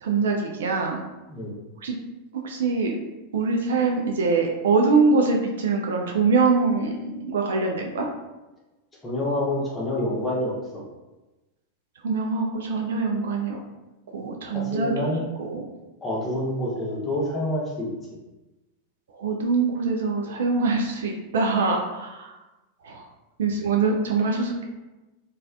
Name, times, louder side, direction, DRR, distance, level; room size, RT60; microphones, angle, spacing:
voice 1, 0.0-1.0 1.8-1.9 2.4-3.0 3.3-8.1 12.0-13.6 14.1-15.1 15.4-15.6 19.2-22.3 22.8-23.0 23.4-24.6, right 4 dB, 60° right, 1 dB, 0.3 m, -23 dB
voice 2, 9.0-10.5 14.5-15.2 16.0-17.9, left 1 dB, 15° left, -5 dB, 0.9 m, -27 dB
3.1 x 2.3 x 2.4 m, 1.1 s
figure-of-eight pair, 90°, 0 cm